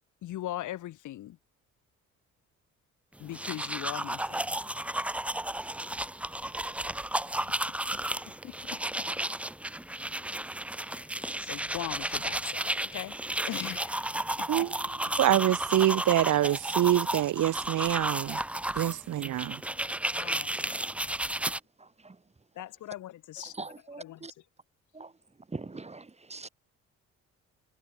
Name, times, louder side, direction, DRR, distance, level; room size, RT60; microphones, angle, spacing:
voice 1, 0.2-1.4 3.2-4.5 7.3-7.4 8.3-9.1 9.9-10.1 10.8-13.2 13.5-14.5 18.8-19.0 20.1-20.7 22.6-23.5 24.0-24.2, left 14 dB, 80° left, 1.9 m, -40 dB
sound 1, 3.2-21.6, right 1 dB, 5° right, 0.5 m, -33 dB
voice 2, 14.5-18.4 18.8-19.6, right 13 dB, 75° right, 1.8 m, -26 dB
voice 3, 21.4-22.2 23.4-24.3 24.9-25.1 25.5-26.5, right 3 dB, 20° right, 4.6 m, -43 dB
cardioid pair, 90°, 30 cm